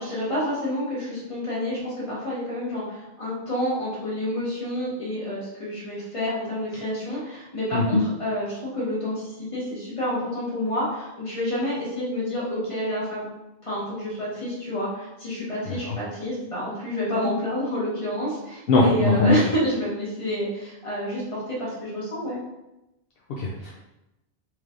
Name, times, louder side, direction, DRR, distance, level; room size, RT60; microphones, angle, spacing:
voice 1, 0.0-13.3 13.6-22.4, equal, 30° left, -7 dB, 1.4 m, -29 dB
voice 2, 18.7-19.4 23.4-23.7, left 3 dB, 70° left, -4 dB, 0.8 m, -21 dB
4.4 x 3.1 x 2.5 m, 0.94 s
omnidirectional pair, 1.1 m